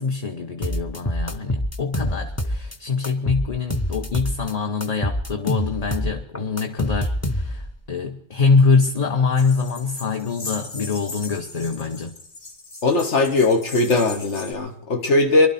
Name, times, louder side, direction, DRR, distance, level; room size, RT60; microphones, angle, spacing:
voice 1, 0.0-12.1, left 4 dB, 35° left, 1.0 m, -24 dB
sound 1, 0.6-2.8 3.0-4.5 4.8-7.7, equal, 20° left, 0.5 m, -26 dB
sound 2, 9.4-14.5, left 3 dB, 50° left, 2.0 m, -38 dB
voice 2, 12.8-15.5, left 2 dB, 75° left, 1.5 m, -19 dB
24.0 x 12.0 x 4.2 m
omnidirectional pair, 1.2 m